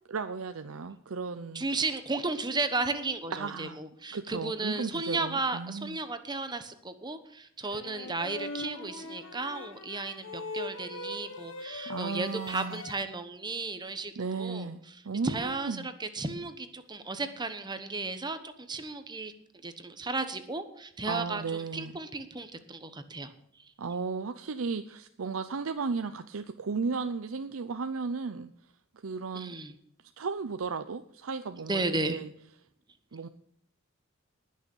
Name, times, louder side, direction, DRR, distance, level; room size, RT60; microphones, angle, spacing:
voice 1, 0.1-1.6 3.3-3.8 4.1-6.0 11.9-12.8 14.2-15.9 21.1-22.0 23.8-28.5 29.0-29.5 30.2-32.3 33.1-33.3, right 4 dB, 90° right, 9 dB, 0.6 m, -35 dB
voice 2, 1.5-14.7 15.2-23.3 23.6-23.7 29.3-29.7 31.7-32.2, right 3 dB, 20° right, 10 dB, 1.0 m, -34 dB
sound 1, 7.6-12.9, left 2 dB, 65° left, 1.6 m, -41 dB
19.5 x 6.5 x 5.4 m, 0.73 s
head